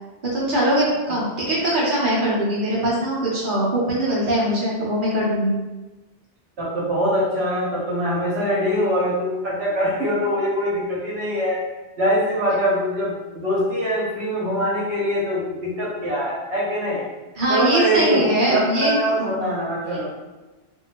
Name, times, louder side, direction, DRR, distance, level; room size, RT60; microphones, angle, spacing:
voice 1, 0.2-5.5 17.4-19.3, right 1 dB, 50° right, -6 dB, 1.1 m, -21 dB
voice 2, 6.6-11.6 12.0-17.1 17.5-20.1, equal, 70° right, -6 dB, 1.3 m, -23 dB
2.7 x 2.6 x 2.9 m, 1.1 s
omnidirectional pair, 1.1 m